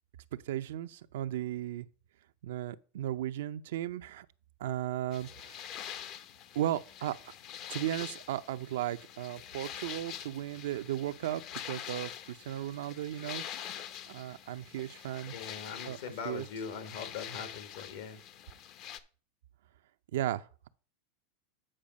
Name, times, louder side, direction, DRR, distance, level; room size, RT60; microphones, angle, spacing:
voice 1, 0.5-1.9 2.4-4.3 4.6-5.7 6.5-7.3 7.7-13.4 14.1-15.4 15.8-16.0 16.2-16.5 20.1-20.7, right 12 dB, 80° right, 0.5 m, -36 dB
sound 1, 5.1-19.0, left 10 dB, 45° left, 0.7 m, -45 dB
voice 2, 15.3-18.2, left 6 dB, 75° left, 1.7 m, -41 dB
8.8 x 4.9 x 5.2 m
supercardioid pair, 130°, 0 cm